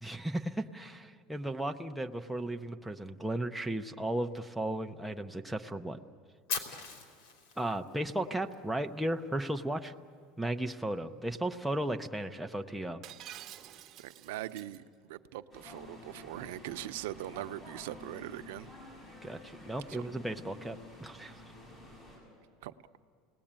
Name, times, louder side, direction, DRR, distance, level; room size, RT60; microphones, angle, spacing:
voice 1, 0.0-6.0 7.6-9.9 10.4-13.0 19.2-21.4, right 1 dB, ahead, 3 dB, 0.7 m, -35 dB
Fire, 6.5-8.5, left 5 dB, 75° left, 3.2 m, -39 dB
Shatter, 13.0-14.8, right 12 dB, 35° right, 1.1 m, -49 dB
voice 2, 14.0-18.7 19.9-20.0 22.6-22.7, right 14 dB, 85° right, 10 dB, 0.7 m, -41 dB
sound 1, 15.5-22.2, left 2 dB, 20° left, 7.5 m, -51 dB
29.5 x 19.5 x 8.8 m, 2.2 s
cardioid pair, 170°, 0 cm